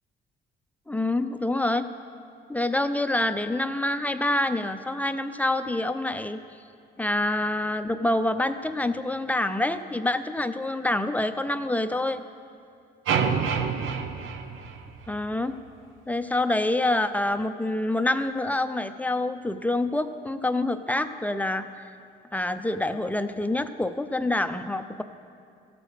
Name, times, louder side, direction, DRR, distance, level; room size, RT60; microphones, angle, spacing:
voice 1, 0.9-1.9 2.5-6.4 7.0-12.2 15.1-15.6 16.1-21.9 22.3-25.0, left 2 dB, 10° left, 10 dB, 0.4 m, -26 dB
sound 1, 13.1-15.3, right 6 dB, 80° right, 0.7 m, -27 dB
15.5 x 6.3 x 5.0 m, 2.4 s
cardioid pair, 90°, 20 cm